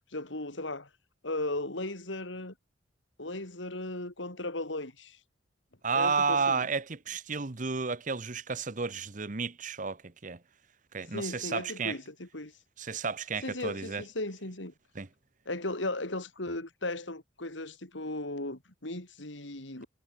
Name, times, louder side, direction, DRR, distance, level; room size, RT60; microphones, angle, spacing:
voice 1, 0.1-0.9 1.2-2.5 3.2-5.2 5.9-6.6 11.1-12.5 13.4-14.7 15.5-19.9, left 2 dB, 80° left, 4.3 m, -36 dB
voice 2, 5.8-10.4 10.9-12.0 12.8-14.0 14.9-15.1, right 5 dB, 40° right, 1.0 m, -32 dB
head